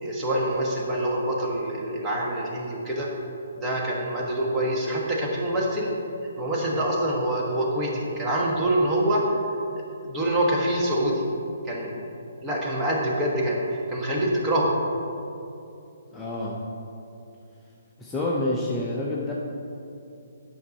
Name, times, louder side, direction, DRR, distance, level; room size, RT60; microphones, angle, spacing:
voice 1, 0.0-3.1 3.6-5.9 6.4-9.2 10.0-11.3 11.6-12.1 12.4-14.8, right 1 dB, 15° right, -3 dB, 1.3 m, -25 dB
voice 2, 16.1-16.6 18.0-19.3, left 1 dB, 10° left, -5 dB, 0.7 m, -28 dB
8.4 x 5.5 x 4.1 m, 2.7 s
hypercardioid pair, 140°, 0 cm